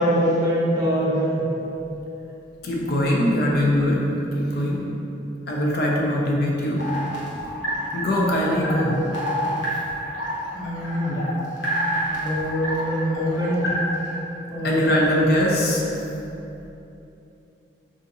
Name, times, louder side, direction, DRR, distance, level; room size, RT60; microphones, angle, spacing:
voice 1, 0.0-1.5 8.5-8.9 10.5-11.2 12.1-13.7 14.5-15.3, equal, 20° right, -8 dB, 0.6 m, -24 dB
voice 2, 2.6-4.0 4.3-4.9 5.5-6.9 7.9-9.0 14.6-15.9, equal, 55° left, -3 dB, 0.5 m, -22 dB
sound 1, 6.8-14.1, equal, 90° left, 0.8 m, -29 dB
2.6 x 2.5 x 4.0 m, 2.9 s
head